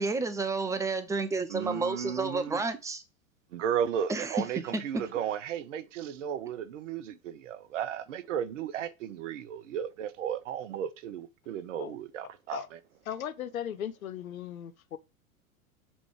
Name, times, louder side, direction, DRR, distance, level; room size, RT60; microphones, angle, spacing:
voice 1, 0.0-3.0 4.1-4.5 4.7-5.0, right 3 dB, 10° right, 0.4 m, -30 dB
voice 2, 1.5-2.6 3.5-12.8, right 9 dB, 60° right, 0.8 m, -34 dB
voice 3, 13.1-15.0, left 10 dB, 75° left, 0.8 m, -37 dB
6.2 x 3.2 x 4.9 m
figure-of-eight pair, 90°, 42 cm